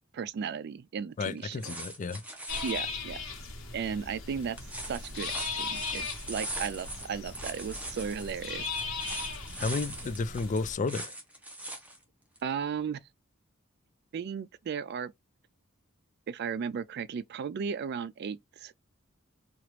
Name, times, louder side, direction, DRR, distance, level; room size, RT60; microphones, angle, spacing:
voice 1, 0.1-1.8 2.6-3.2 3.7-4.6 4.9-8.7 12.4-13.0 14.1-15.1 16.3-18.9, right 6 dB, 55° right, 0.3 m, -35 dB
voice 2, 1.2-2.2 9.6-11.1, left 4 dB, 40° left, 0.3 m, -32 dB
sound 1, 1.4-2.9 4.4-12.0 12.3-12.4, right 1 dB, 5° right, 0.8 m, -41 dB
sound 2, 2.5-10.7, left 4 dB, 80° left, 1.1 m, -38 dB
2.9 x 2.4 x 3.1 m
head